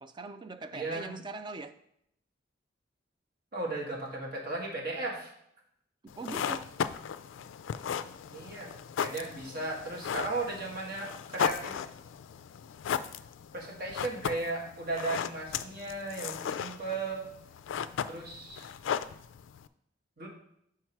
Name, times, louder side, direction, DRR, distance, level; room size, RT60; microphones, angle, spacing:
voice 1, 0.0-1.7 6.2-6.7, right 3 dB, 25° right, 10 dB, 0.4 m, -41 dB
voice 2, 0.7-1.1 3.5-5.3 8.3-8.7 9.0-11.8 13.5-17.3 18.1-18.7 20.2-20.3, right 2 dB, 55° right, -2 dB, 1.7 m, -36 dB
sound 1, 6.1-19.7, left 8 dB, 90° left, 0.3 m, -36 dB
5.9 x 4.7 x 4.5 m, 0.74 s
head